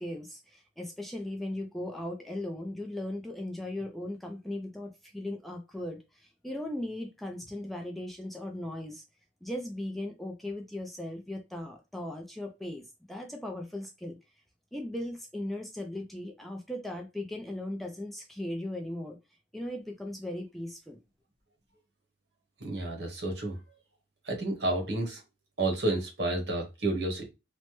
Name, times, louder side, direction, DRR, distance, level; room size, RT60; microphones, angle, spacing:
voice 1, 0.0-9.0 9.4-14.2 14.7-19.2 19.5-21.0, left 1 dB, ahead, 0.4 m, -38 dB
voice 2, 22.6-23.6 24.2-25.2 25.6-27.3, right 2 dB, 65° right, 1.0 m, -30 dB
3.2 x 2.0 x 2.9 m
head